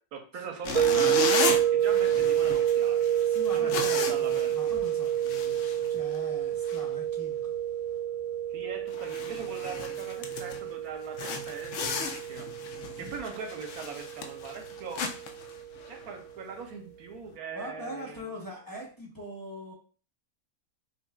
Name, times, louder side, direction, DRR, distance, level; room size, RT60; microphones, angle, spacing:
voice 1, 0.0-3.1 3.5-4.6 8.5-12.5 13.0-15.0 15.9-18.3, right 5 dB, 85° right, 4 dB, 1.2 m, -41 dB
sound 1, 0.6-6.3 6.6-6.9 7.4-7.6 8.0-8.1 8.5-8.6 8.9-10.7 11.1-16.2, left 4 dB, 65° left, 0.9 m, -35 dB
sound 2, 0.7-15.7, right 10 dB, 20° right, 2.0 m, -29 dB
voice 2, 3.2-7.5 12.9-13.1 17.5-19.7, equal, 20° left, -5 dB, 0.8 m, -42 dB
5.3 x 2.4 x 2.3 m, 0.38 s
omnidirectional pair, 1.5 m